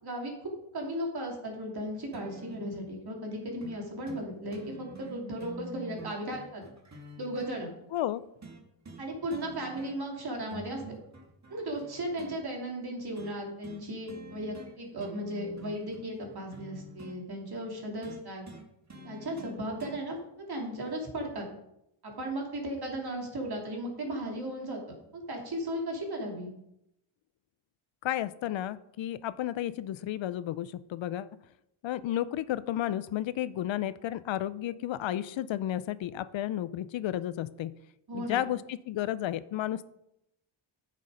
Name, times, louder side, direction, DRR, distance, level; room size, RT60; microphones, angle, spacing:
voice 1, 0.0-6.6 7.2-7.7 9.0-10.8 11.5-18.4 19.0-21.5 22.0-24.8 25.1-26.5 38.1-38.4, right 1 dB, 50° right, 0 dB, 3.1 m, -36 dB
sound 1, 2.1-2.7 3.6-3.8 4.1-4.2 4.5-7.6 8.4-9.0 9.3-10.1 10.5-12.4 13.2-13.4 13.6-13.8 14.1-14.7 15.0-17.2 18.0-20.0 21.0-21.1, right 1 dB, 35° right, 2.0 m, -47 dB
voice 2, 7.9-8.2 28.0-31.3 31.8-37.7 38.1-39.8, left 12 dB, 65° left, 16 dB, 0.6 m, -32 dB
9.4 x 6.4 x 5.1 m, 0.81 s
cardioid pair, 90°, 49 cm